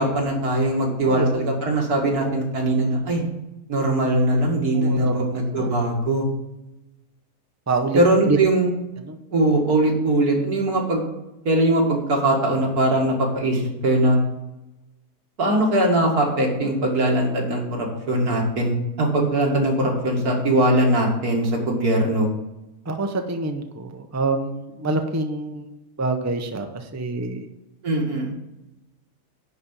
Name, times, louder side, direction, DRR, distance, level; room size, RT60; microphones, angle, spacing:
voice 1, 0.0-3.2 3.7-6.2 7.9-8.7 9.3-11.0 11.4-14.2 15.4-22.3 27.8-28.3, right 1 dB, 85° right, -1 dB, 2.6 m, -21 dB
voice 2, 1.0-1.5 2.0-2.3 4.7-5.7 7.7-8.4 9.0-9.2 22.8-25.7 26.0-27.5, right 3 dB, 15° right, 5 dB, 0.6 m, -27 dB
10.5 x 4.1 x 7.3 m, 0.95 s
omnidirectional pair, 1.6 m